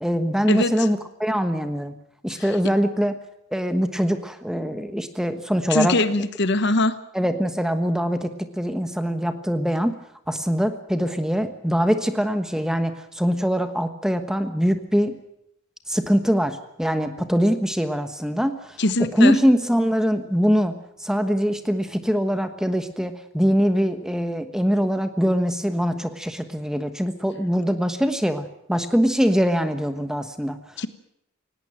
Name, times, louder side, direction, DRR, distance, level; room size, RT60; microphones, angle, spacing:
voice 1, 0.0-1.9 2.2-3.2 3.5-6.2 7.1-9.9 10.3-15.2 15.9-30.6, equal, 5° right, 9 dB, 1.2 m, -23 dB
voice 2, 5.7-6.9 18.8-19.4 30.8-30.9, left 2 dB, 55° left, 13 dB, 1.1 m, -21 dB
18.5 x 17.5 x 9.0 m, 0.76 s
head